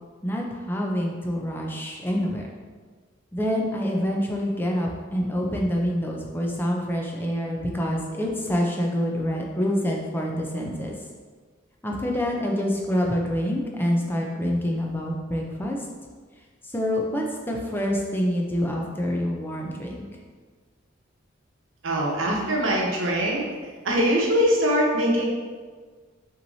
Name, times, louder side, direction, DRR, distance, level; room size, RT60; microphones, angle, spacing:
voice 1, 0.2-2.5 3.3-10.9 11.8-15.8 16.7-20.0, equal, 10° left, -1 dB, 0.5 m, -26 dB
voice 2, 21.8-23.5 23.8-25.2, equal, 80° right, -2 dB, 1.0 m, -22 dB
5.9 x 3.1 x 2.7 m, 1.5 s
head